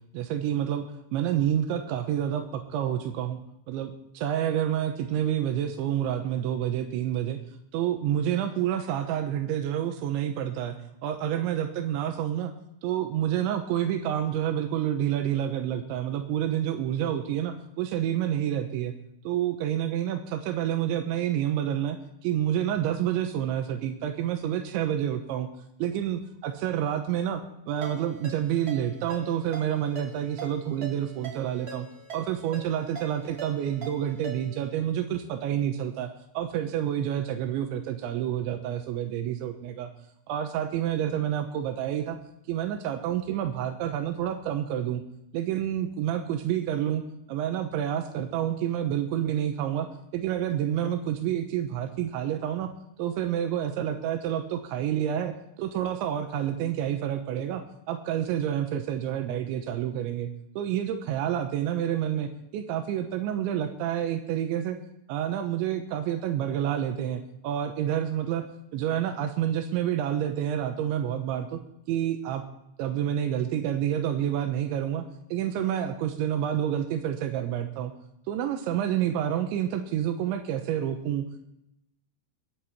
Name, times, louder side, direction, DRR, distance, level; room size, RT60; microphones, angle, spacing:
voice 1, 0.1-0.9 1.1-3.4 3.7-7.4 7.7-10.7 11.0-12.5 12.8-18.9 19.3-25.5 25.8-31.9 32.1-39.9 40.3-42.2 42.5-45.0 45.3-47.0 47.3-49.9 50.1-52.7 53.0-55.3 55.6-60.3 60.6-64.8 65.1-68.4 68.7-71.6 71.9-72.4 72.8-75.1 75.3-77.9 78.3-81.2, right 10 dB, 85° right, 6 dB, 3.3 m, -28 dB
Ringtone, 27.8-34.7, right 5 dB, 25° right, 2.8 m, -43 dB
22.5 x 9.8 x 4.3 m, 0.82 s
omnidirectional pair, 5.3 m